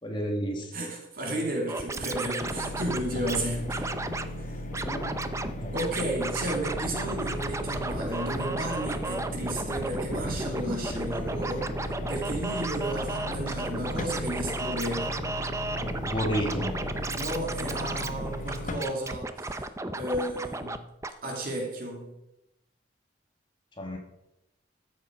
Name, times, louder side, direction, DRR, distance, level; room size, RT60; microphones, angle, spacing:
voice 1, 0.0-0.7 4.8-5.1 5.6-5.7 16.0-16.8 23.8-24.0, equal, 25° left, 1 dB, 2.1 m, -31 dB
voice 2, 0.7-3.9 4.4-4.6 5.7-15.2 17.1-19.7 19.9-20.8 21.2-22.2, right 1 dB, 50° right, 0 dB, 2.9 m, -33 dB
Scratching (performance technique), 1.7-3.4 3.7-4.3 4.7-5.5 5.8-20.8 21.0-21.1, right 2 dB, 15° right, 0.6 m, -34 dB
sound 1, 2.4-18.8, left 1 dB, 40° left, 1.1 m, -37 dB
13.5 x 7.7 x 5.2 m, 0.89 s
head